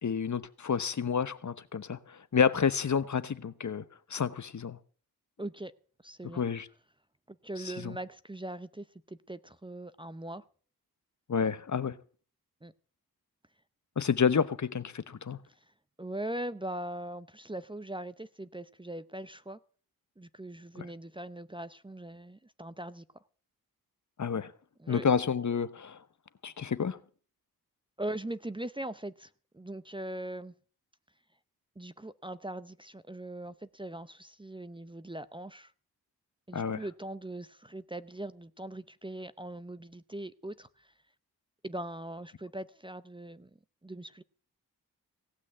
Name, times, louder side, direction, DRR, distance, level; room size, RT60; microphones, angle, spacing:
voice 1, 0.0-3.8 4.1-4.8 6.3-6.7 7.6-8.0 11.3-12.0 14.0-15.4 20.8-20.9 24.2-24.5 24.9-26.0 26.4-27.0 36.5-36.8, left 6 dB, 50° left, 1.0 m, -29 dB
voice 2, 5.4-5.7 6.0-6.4 7.3-10.4 12.6-12.7 16.0-19.6 20.2-23.0 24.8-25.0 28.0-30.5 31.8-35.7 36.5-40.9 41.6-43.5 43.8-44.2, right 1 dB, 15° right, 0.7 m, -41 dB
17.5 x 6.2 x 8.8 m
cardioid pair, 50°, 38 cm